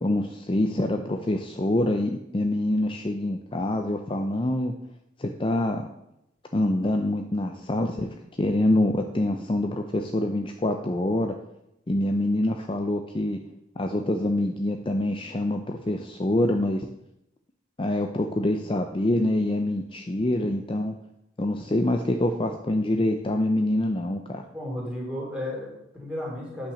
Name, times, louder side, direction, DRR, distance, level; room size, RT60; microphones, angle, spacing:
voice 1, 0.0-4.7 5.2-5.9 6.5-8.1 8.4-11.3 11.9-13.4 13.8-16.9 17.8-20.9 21.4-24.4, left 1 dB, 25° left, 5 dB, 0.5 m, -25 dB
voice 2, 24.5-26.7, left 1 dB, 5° right, -3 dB, 2.8 m, -33 dB
8.6 x 5.9 x 6.3 m, 0.83 s
head